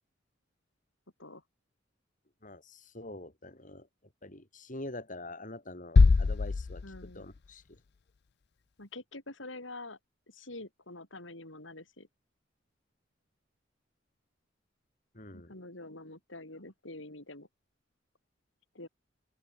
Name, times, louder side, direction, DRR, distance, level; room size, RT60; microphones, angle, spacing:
voice 1, 2.4-3.9 4.2-7.8 15.1-15.5, left 2 dB, 45° left, 7.0 m, -45 dB
sound 1, 6.0-7.8, left 4 dB, 60° left, 0.5 m, -24 dB
voice 2, 6.8-7.3 8.8-10.0 10.3-12.1 15.3-17.5 18.7-18.9, left 2 dB, 85° left, 7.5 m, -46 dB
open air
head